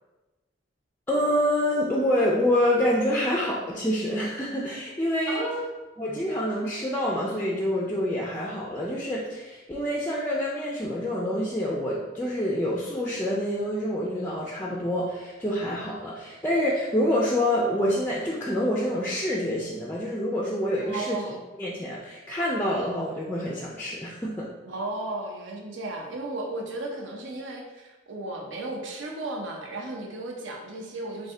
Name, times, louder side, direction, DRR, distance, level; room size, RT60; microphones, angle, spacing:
voice 1, 1.1-5.4 6.0-21.2 21.6-24.5, equal, 10° left, -3 dB, 0.3 m, -27 dB
voice 2, 5.3-5.7 20.8-21.4 24.6-31.3, right 2 dB, 70° right, 1 dB, 0.6 m, -34 dB
3.2 x 2.6 x 3.7 m, 1.1 s
head